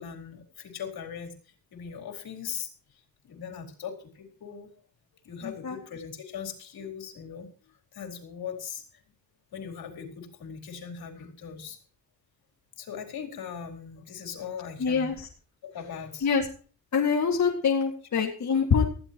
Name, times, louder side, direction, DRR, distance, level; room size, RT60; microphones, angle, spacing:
voice 1, 0.0-1.3 1.7-2.7 3.2-4.7 5.2-7.5 7.9-8.8 9.5-11.8 12.8-15.1 15.6-16.3, left 7 dB, 70° left, 3 dB, 4.4 m, -39 dB
voice 2, 5.4-5.8 14.8-15.3 16.2-16.5 16.9-18.8, left 6 dB, 50° left, 1 dB, 2.2 m, -25 dB
19.5 x 15.5 x 3.0 m, 0.41 s
cardioid pair, 115°, 37 cm